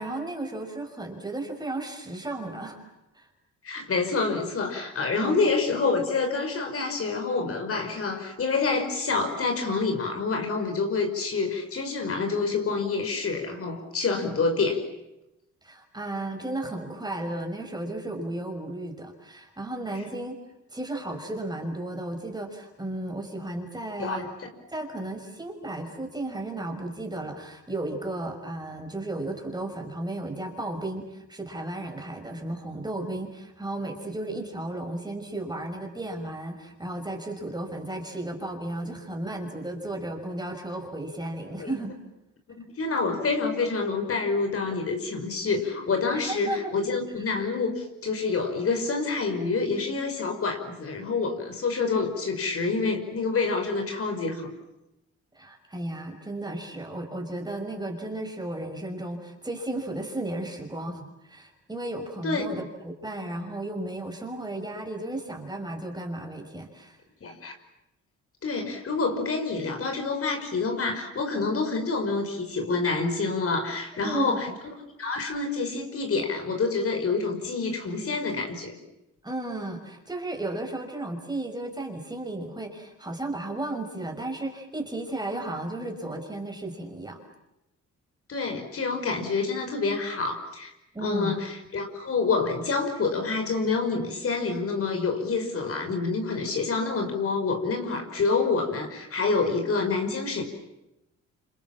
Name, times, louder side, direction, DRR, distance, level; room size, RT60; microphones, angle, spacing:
voice 1, 0.0-2.8 3.1-3.3 5.2-5.4 15.6-20.3 20.7-24.3 24.7-41.9 46.2-46.7 55.4-67.0 74.0-74.4 79.2-87.2 90.9-91.3, right 2 dB, 15° right, 3 dB, 6.0 m, -34 dB
voice 2, 3.6-14.9 24.0-24.3 41.6-41.7 42.6-54.5 62.2-62.4 67.2-67.5 68.4-74.7 75.0-78.8 88.3-90.7 91.0-100.4, left 4 dB, 50° left, 5 dB, 5.6 m, -27 dB
28.5 x 26.5 x 7.5 m, 0.90 s
cardioid pair, 90°, 30 cm